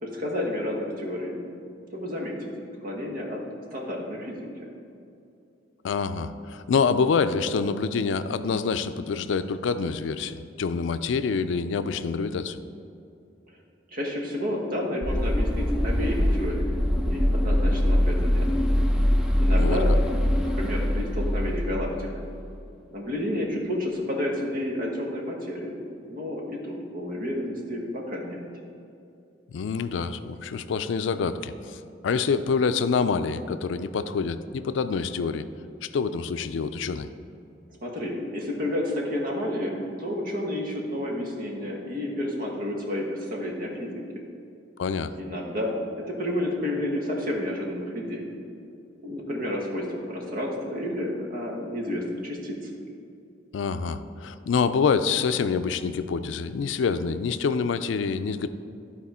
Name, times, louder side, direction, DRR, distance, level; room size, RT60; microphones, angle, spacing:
voice 1, 0.0-1.4 1.9-2.5 2.8-3.4 3.7-4.7 13.9-18.5 19.4-19.9 20.4-22.1 22.9-28.4 37.8-43.9 45.2-45.8 46.1-48.3 49.0-52.7, left 1 dB, 50° right, -1 dB, 1.3 m, -30 dB
voice 2, 5.8-12.6 19.6-19.8 29.5-35.5 35.8-37.1 44.8-45.1 53.5-58.5, left 5 dB, 85° left, 11 dB, 0.4 m, -26 dB
sound 1, 15.0-22.4, left 1 dB, 5° right, 0.6 m, -23 dB
11.5 x 4.3 x 4.3 m, 2.6 s
head